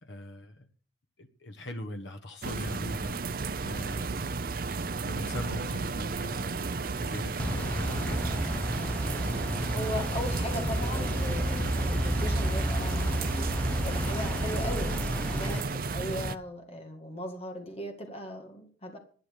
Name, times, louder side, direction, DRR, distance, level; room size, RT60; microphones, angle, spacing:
voice 1, 0.0-0.7 1.2-4.4 5.0-8.4, left 1 dB, 70° left, 6 dB, 1.3 m, -41 dB
sound 1, 2.4-16.4, right 4 dB, 45° right, 0.6 m, -33 dB
sound 2, 7.4-15.6, equal, 5° left, 0.6 m, -31 dB
voice 2, 9.7-13.5 13.8-19.0, left 1 dB, 30° left, 3 dB, 2.2 m, -38 dB
12.0 x 9.9 x 6.7 m, 0.42 s
head